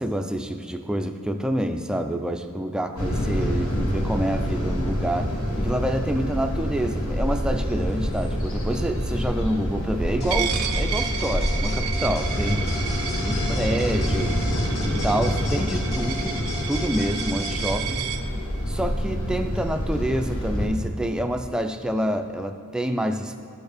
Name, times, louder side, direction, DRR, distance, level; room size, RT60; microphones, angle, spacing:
voice 1, 0.0-12.7 13.2-14.4 14.9-16.4 16.7-18.0 18.7-23.4, right 1 dB, 5° right, 6 dB, 0.3 m, -27 dB
sound 1, 3.0-20.7, equal, 75° left, 1.3 m, -27 dB
sound 2, 10.2-17.8, left 2 dB, 50° left, 1.6 m, -37 dB
Coin (dropping), 10.3-18.2, right 10 dB, 75° right, 0.6 m, -33 dB
13.0 x 4.5 x 5.0 m, 2.3 s
head